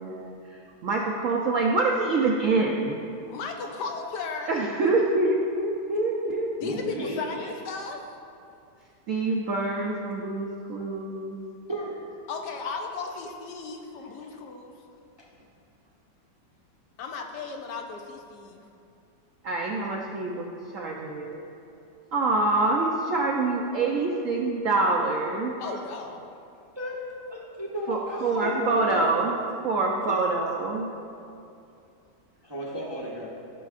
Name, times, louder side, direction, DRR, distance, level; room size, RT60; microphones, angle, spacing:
voice 1, 0.0-3.0 4.5-6.6 9.1-11.4 19.4-21.4 22.1-25.8 27.9-30.9, right 3 dB, 70° right, -2 dB, 0.7 m, -26 dB
voice 2, 3.3-4.5 6.6-8.0 12.3-14.7 17.0-18.6 25.6-26.2, left 4 dB, 70° left, 3 dB, 1.1 m, -35 dB
voice 3, 4.0-4.5 6.6-7.5 7.8-7.9 11.7-12.1 12.4-12.5 14.2-14.3 15.2-15.3 26.7-27.0 27.3-29.1 32.4-33.3, equal, 25° right, -5 dB, 0.6 m, -35 dB
14.0 x 6.1 x 2.4 m, 2.6 s
omnidirectional pair, 2.0 m